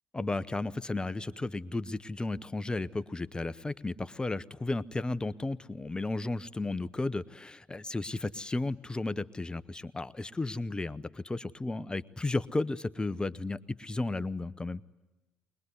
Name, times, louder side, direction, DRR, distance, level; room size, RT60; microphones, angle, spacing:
voice 1, 0.1-14.8, left 2 dB, 20° left, 17 dB, 0.8 m, -34 dB
21.5 x 21.0 x 9.8 m, 1.1 s
hypercardioid pair, 50°, 5 cm